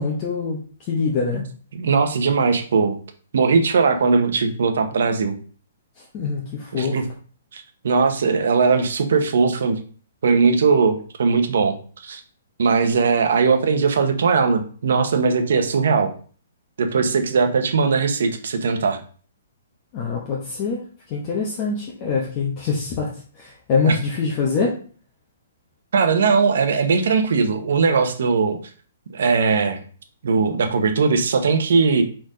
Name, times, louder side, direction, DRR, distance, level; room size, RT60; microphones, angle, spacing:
voice 1, 0.0-1.4 6.1-7.0 19.9-20.8 21.1-23.1 23.4-24.7, left 5 dB, 20° left, -3 dB, 1.0 m, -24 dB
voice 2, 1.7-3.0 3.3-5.4 6.7-7.0 7.5-9.8 10.2-11.8 12.0-12.2 12.6-16.1 16.8-19.0 23.9-24.0 25.9-28.6 29.1-29.8 30.2-32.0, right 5 dB, 60° right, 7 dB, 1.2 m, -19 dB
4.6 x 4.5 x 5.1 m, 0.42 s
hypercardioid pair, 175°, 0 cm